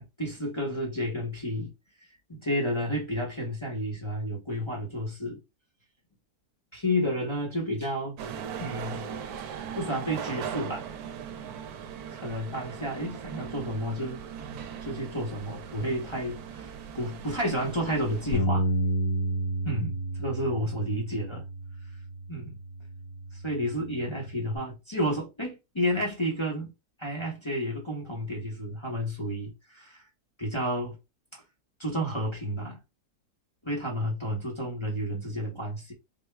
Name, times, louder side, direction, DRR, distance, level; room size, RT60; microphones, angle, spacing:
voice 1, 0.0-1.7 2.3-5.4 6.7-8.2 8.6-9.1 9.7-10.9 12.1-18.7 19.6-21.4 22.3-22.6 23.3-26.7 27.0-30.0 30.4-31.0 31.8-32.8 33.6-35.9, equal, 20° left, 0.9 m, -31 dB
sound 1, 8.2-18.4, right 8 dB, 70° right, 1.1 m, -39 dB
Bass guitar, 18.3-24.6, right 1 dB, 75° left, 0.5 m, -31 dB
4.2 x 2.3 x 3.3 m
omnidirectional pair, 1.7 m